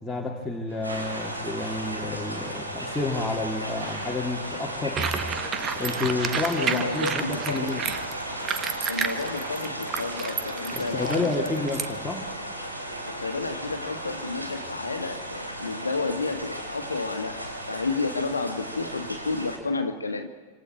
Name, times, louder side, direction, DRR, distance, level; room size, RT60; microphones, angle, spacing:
voice 1, 0.0-5.0 5.8-7.8 10.7-12.3, left 3 dB, 5° left, -4 dB, 2.9 m, -30 dB
Door / Screech, 0.7-8.9, right 2 dB, 70° right, 7.1 m, -45 dB
sound 1, 0.8-19.6, right 1 dB, 85° right, 3.3 m, -35 dB
sound 2, 5.0-11.9, right 7 dB, 25° right, 1.3 m, -31 dB
voice 2, 6.5-7.7 8.9-11.7 13.0-20.3, left 3 dB, 75° left, 7 dB, 1.7 m, -31 dB
27.0 x 26.5 x 4.6 m, 1.5 s
figure-of-eight pair, 90°, 0 cm